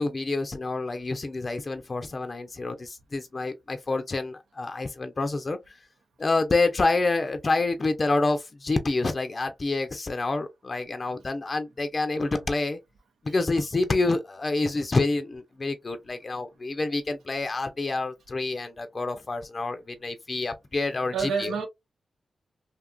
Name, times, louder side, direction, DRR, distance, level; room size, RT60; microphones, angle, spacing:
voice 1, 0.0-5.8 6.2-12.8 13.2-21.5, left 3 dB, 45° left, 0.4 m, -27 dB
voice 2, 7.2-7.5 12.2-12.5 13.3-13.4 21.1-21.7, right 5 dB, 85° right, 0.5 m, -31 dB
2.7 x 2.4 x 2.2 m
supercardioid pair, 45°, 0 cm